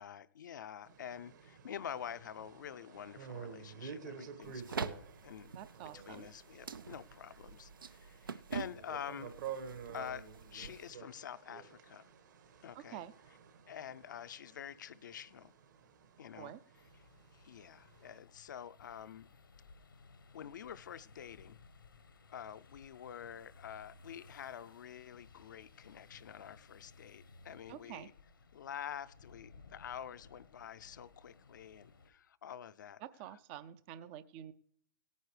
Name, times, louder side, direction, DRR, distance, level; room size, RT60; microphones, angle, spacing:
voice 1, 0.0-5.5 5.9-9.3 9.9-10.3 10.5-12.1 12.6-13.0 13.7-15.5 16.2-16.5 17.3-19.3 20.3-21.6 22.3-28.1 28.5-33.0, left 9 dB, 60° left, 15 dB, 0.5 m, -47 dB
sound 1, 0.8-18.2, right 7 dB, 60° right, 1.8 m, -51 dB
sound 2, 4.4-10.9, right 6 dB, 80° right, 0.6 m, -46 dB
voice 2, 5.5-6.3 12.7-13.1 16.3-16.6 27.7-28.1 33.0-34.5, right 11 dB, 30° right, 15 dB, 0.5 m, -48 dB
sound 3, 16.7-32.1, left 4 dB, 85° left, 1.2 m, -60 dB
17.5 x 9.4 x 3.3 m, 0.65 s
hypercardioid pair, 130°, 11 cm